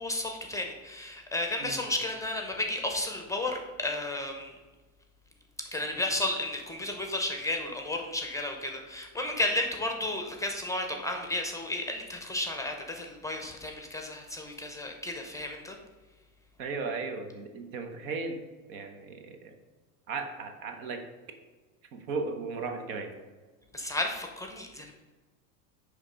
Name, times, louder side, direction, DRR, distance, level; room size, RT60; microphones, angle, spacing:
voice 1, 0.0-4.5 5.7-15.8 23.7-24.9, left 1 dB, 5° left, 3 dB, 0.7 m, -33 dB
voice 2, 16.6-18.4 18.7-19.5 20.1-21.0 21.9-23.1, right 4 dB, 65° right, 6 dB, 1.3 m, -36 dB
9.9 x 3.4 x 5.1 m, 1.3 s
supercardioid pair, 125°, 43 cm